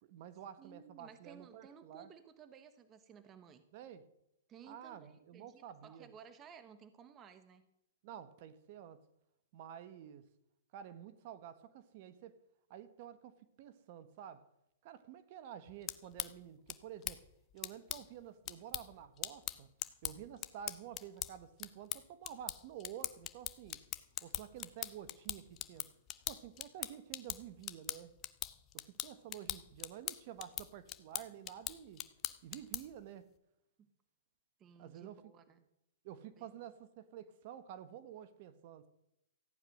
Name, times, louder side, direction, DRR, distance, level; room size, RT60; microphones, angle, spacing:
voice 1, 0.0-2.1 3.7-4.0 4.7-6.1 8.0-9.0 9.5-10.2 10.7-12.3 12.7-14.4 14.8-17.2 17.5-19.7 20.0-23.8 24.2-25.8 26.3-28.1 28.7-32.0 32.4-33.3 34.8-35.2 36.0-38.9, right 10 dB, 45° right, 1.2 m, -50 dB
voice 2, 0.6-3.6 4.5-7.7 33.8-33.9 34.6-35.6 36.4-36.5, right 7 dB, 25° right, 1.0 m, -57 dB
sound 1, 15.7-33.0, left 14 dB, 30° left, 0.8 m, -44 dB
14.5 x 9.7 x 6.4 m
hypercardioid pair, 140°, 0 cm